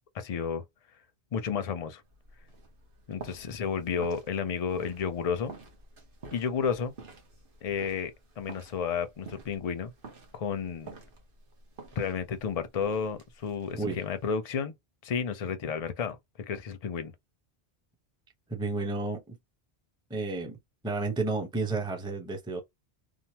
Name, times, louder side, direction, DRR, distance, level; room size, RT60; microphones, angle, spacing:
voice 1, 0.1-0.6 1.3-2.0 3.1-5.5 6.3-6.9 7.6-9.9 10.3-10.9 12.0-14.7 15.0-16.2 16.5-17.1, left 6 dB, 45° left, 0.5 m, -32 dB
sound 1, 2.0-14.3, right 3 dB, 60° right, 1.1 m, -50 dB
voice 2, 18.5-19.4 20.1-20.6 20.8-22.6, right 3 dB, 5° right, 0.6 m, -31 dB
3.1 x 2.0 x 2.8 m
omnidirectional pair, 1.1 m